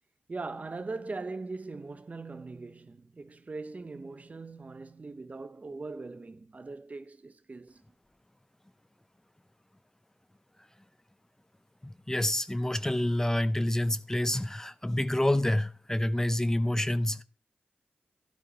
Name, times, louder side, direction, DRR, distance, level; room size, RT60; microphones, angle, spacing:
voice 1, 0.3-7.8, right 3 dB, 45° right, 0.8 m, -40 dB
voice 2, 11.8-17.2, left 1 dB, 15° left, 0.6 m, -28 dB
12.0 x 12.0 x 2.9 m
cardioid pair, 50°, 4 cm